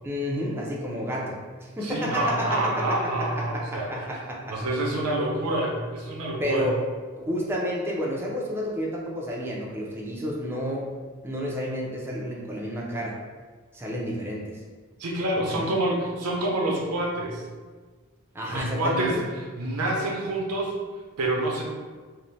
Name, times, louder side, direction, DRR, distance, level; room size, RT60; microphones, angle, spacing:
voice 1, 0.0-4.6 4.9-5.1 6.4-6.8 7.2-10.9 11.2-13.2 13.7-14.6 15.4-15.7 18.3-19.1, equal, 10° right, -3 dB, 0.3 m, -30 dB
voice 2, 1.8-3.9 4.5-6.7 15.0-17.4 18.5-20.7 21.2-21.6, right 1 dB, 85° right, -1 dB, 0.5 m, -27 dB
2.6 x 2.0 x 3.1 m, 1.4 s
head